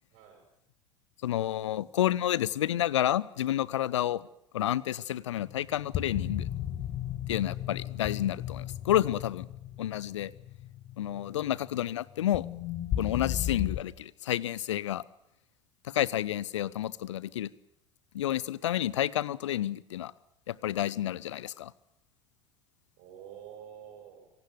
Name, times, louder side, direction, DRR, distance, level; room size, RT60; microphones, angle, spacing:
voice 1, 0.1-0.4 7.4-7.9 11.0-11.4 23.0-24.3, right 9 dB, 55° right, 2 dB, 7.5 m, -50 dB
voice 2, 1.2-4.3 4.5-6.5 7.3-9.5 9.8-10.3 11.0-12.4 13.0-15.0 15.9-17.5 18.1-20.1 20.5-21.7, left 12 dB, 70° left, 22 dB, 0.8 m, -30 dB
sound 1, 5.4-13.8, left 11 dB, 45° left, 1.7 m, -36 dB
25.5 x 18.0 x 7.9 m, 0.81 s
figure-of-eight pair, 70°, 16 cm